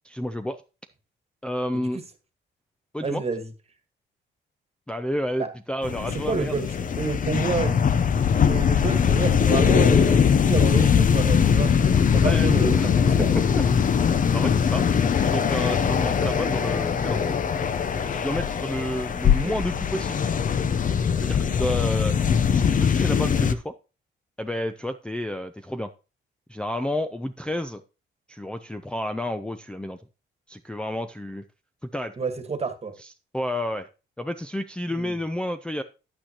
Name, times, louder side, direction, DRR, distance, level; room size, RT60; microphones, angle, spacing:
voice 1, 0.0-0.6 1.4-2.0 2.9-3.2 4.9-6.5 12.2-12.5 12.8-12.9 13.3-14.0 14.3-17.4 18.0-20.3 21.2-22.2 22.5-23.7 24.4-25.9 26.5-27.8 28.3-30.0 30.5-31.4 31.8-32.2 33.0-33.9 34.2-35.8, left 1 dB, 5° left, 0.5 m, -30 dB
voice 2, 3.0-3.5 5.4-5.5 6.3-7.8 8.4-11.7 12.0-13.3 19.4-19.6 32.2-32.9 34.9-35.1, right 4 dB, 30° right, 1.5 m, -29 dB
sound 1, 5.8-23.5, left 7 dB, 40° left, 0.7 m, -21 dB
9.9 x 8.8 x 2.9 m
cardioid pair, 90°, 20 cm